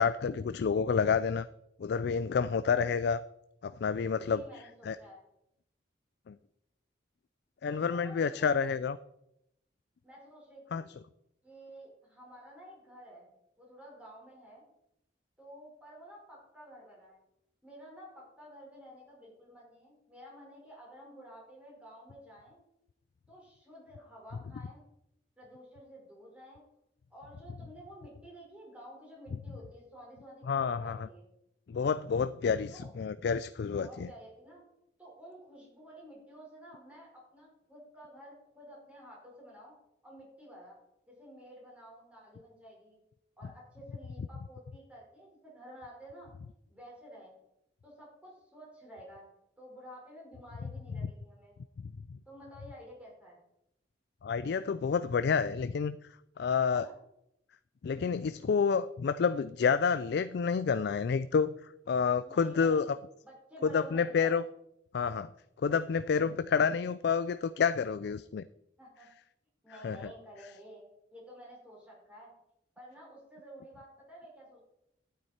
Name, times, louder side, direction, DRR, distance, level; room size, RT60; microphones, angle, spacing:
voice 1, 0.0-1.5 1.8-3.2 3.6-4.4 4.9-5.0 6.3-6.4 7.6-9.0 10.7-10.8 30.5-31.0 31.7-34.1 54.2-56.0 56.4-56.9 57.8-61.5 61.9-63.0 63.7-64.4 64.9-65.3 65.6-68.4 69.8-70.0, left 6 dB, 60° left, 14 dB, 0.3 m, -29 dB
voice 2, 4.2-5.2 7.6-8.6 10.0-10.9 11.4-13.3 13.6-14.6 15.4-17.2 17.6-22.6 23.3-24.8 25.4-26.6 27.1-31.3 32.7-32.9 33.8-34.6 35.0-39.7 40.0-40.8 41.1-43.0 43.4-46.3 46.7-47.4 47.8-49.3 49.6-51.5 52.3-53.4 56.7-56.9 62.2-63.0 63.2-64.3 68.8-69.1 69.6-72.3 72.8-74.6, equal, 5° right, -4 dB, 4.7 m, -51 dB
12.0 x 9.4 x 4.3 m, 0.82 s
head